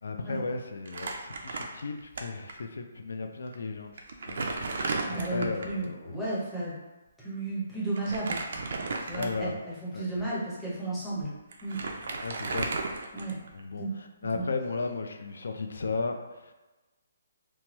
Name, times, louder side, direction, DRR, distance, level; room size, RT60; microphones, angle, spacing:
voice 1, 0.0-4.5 5.0-6.2 9.1-9.6 9.9-10.1 12.2-12.7 13.5-16.5, left 4 dB, 70° left, 6 dB, 0.4 m, -35 dB
Crumpling crinkling, 0.9-2.2 2.5-2.6 3.5-3.6 4.0-5.8 8.0-9.6 10.2-10.3 11.2-11.3 11.5-13.6, right 3 dB, 45° right, 0.4 m, -34 dB
voice 2, 5.0-6.7 7.2-11.3 11.6-11.8 13.1-13.4 13.8-13.9 14.3-14.5, right 2 dB, ahead, -11 dB, 0.6 m, -34 dB
3.0 x 2.2 x 2.9 m, 1.1 s
hypercardioid pair, 180°, 0 cm